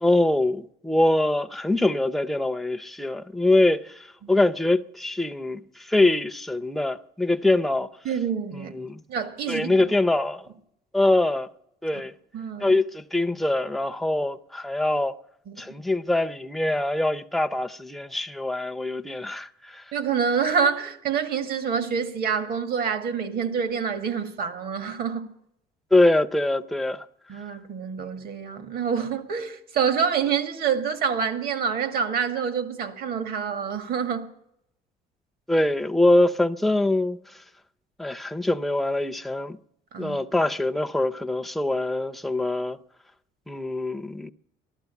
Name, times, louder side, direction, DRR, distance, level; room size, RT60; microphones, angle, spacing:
voice 1, 0.0-7.9 8.5-9.0 9.5-10.5 10.9-11.5 11.8-12.1 12.6-15.1 15.6-19.8 25.9-27.1 35.5-37.2 38.0-39.6 40.0-42.8 43.5-44.3, left 2 dB, ahead, 0.6 m, -23 dB
voice 2, 8.0-8.7 9.1-9.9 12.3-12.8 15.5-15.6 19.9-25.3 27.3-34.3 39.9-40.2, right 6 dB, 60° right, 2.0 m, -27 dB
14.5 x 12.0 x 8.2 m
cardioid pair, 110°, 17 cm